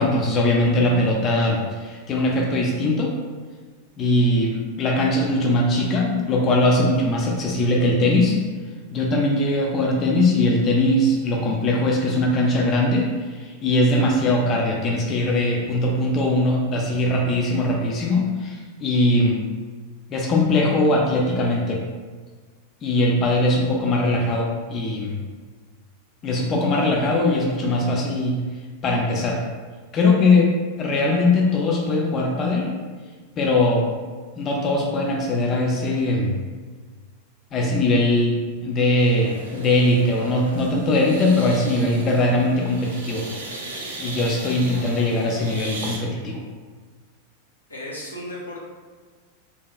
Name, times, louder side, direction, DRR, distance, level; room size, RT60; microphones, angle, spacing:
voice 1, 0.0-3.2 4.0-8.4 8.9-19.4 20.1-21.8 22.8-25.2 26.2-28.4 28.8-29.4 29.9-30.5 30.8-32.7 33.4-33.9 34.4-36.4 37.5-43.3 44.0-46.4, left 1 dB, 30° left, -1 dB, 0.3 m, -21 dB
sound 1, 39.0-46.0, right 2 dB, 65° right, 0.4 m, -36 dB
voice 2, 47.7-48.6, left 1 dB, 80° left, -5 dB, 0.6 m, -34 dB
2.8 x 2.2 x 2.2 m, 1.5 s
figure-of-eight pair, 90°, 0 cm